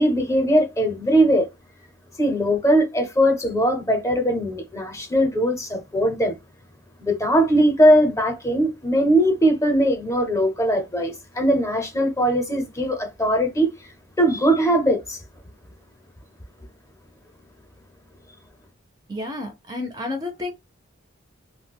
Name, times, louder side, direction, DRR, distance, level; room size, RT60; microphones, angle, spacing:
voice 1, 0.0-1.5 2.2-6.3 7.0-13.7 14.2-15.2, equal, 15° left, 0.7 m, -20 dB
voice 2, 19.1-20.5, left 2 dB, 20° right, 0.5 m, -30 dB
2.3 x 2.1 x 3.6 m
head